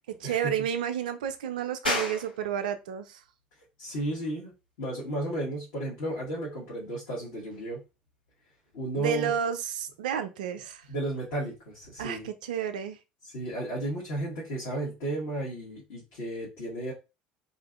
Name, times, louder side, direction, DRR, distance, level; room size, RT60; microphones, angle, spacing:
voice 1, 0.1-3.2 8.9-10.9 12.0-13.0, right 8 dB, 65° right, 0.3 m, -31 dB
sound 1, 1.8-12.1, left 1 dB, 85° left, 1.2 m, -41 dB
voice 2, 3.8-4.5 4.8-7.8 8.7-9.3 10.9-12.3 13.2-16.9, right 1 dB, 60° left, 1.0 m, -33 dB
2.5 x 2.4 x 2.4 m
figure-of-eight pair, 65°, 5 cm